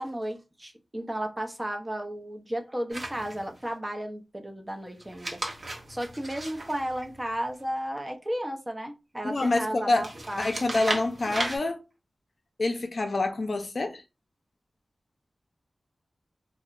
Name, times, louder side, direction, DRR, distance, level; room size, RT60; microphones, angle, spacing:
voice 1, 0.0-10.6, right 1 dB, 20° right, 0.6 m, -34 dB
sound 1, 2.9-3.7 5.0-7.6 10.0-11.6, right 1 dB, 60° right, 0.8 m, -35 dB
voice 2, 9.2-10.1 10.4-11.8 12.6-14.0, left 2 dB, 65° left, 0.4 m, -27 dB
2.7 x 2.0 x 2.5 m
cardioid pair, 45°, 0 cm